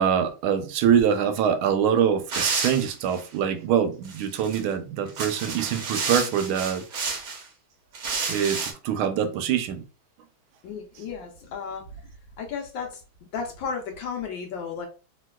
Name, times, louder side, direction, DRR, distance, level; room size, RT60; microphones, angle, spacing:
voice 1, 0.0-6.8 8.3-9.8, right 8 dB, 80° right, 1.4 m, -24 dB
sound 1, 2.3-3.3 4.0-4.6 5.1-7.4 7.9-8.7, right 4 dB, 60° right, 1.0 m, -30 dB
voice 2, 10.6-11.9 12.4-13.0 13.3-14.9, left 6 dB, 70° left, 1.3 m, -33 dB
3.2 x 2.9 x 2.2 m
omnidirectional pair, 2.3 m